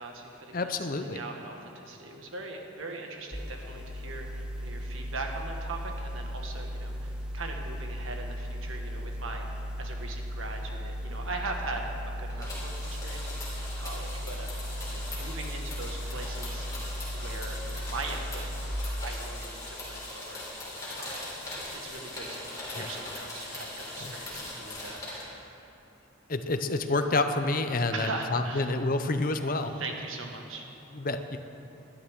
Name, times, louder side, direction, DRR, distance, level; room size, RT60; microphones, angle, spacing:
voice 1, 0.0-11.9 12.2-16.7 17.1-18.5 19.0-20.4 21.0-21.3 21.6-25.6 27.9-28.7 29.6-30.6, right 3 dB, 80° right, 2 dB, 1.6 m, -40 dB
voice 2, 0.5-1.2 22.7-22.9 24.0-24.1 26.3-29.7 30.9-31.4, left 2 dB, 45° left, 8 dB, 0.6 m, -28 dB
sound 1, 3.3-18.7, equal, 5° right, 0.7 m, -36 dB
sound 2, 12.3-25.2, left 2 dB, 15° left, 3.4 m, -40 dB
19.5 x 11.5 x 3.7 m, 2.8 s
head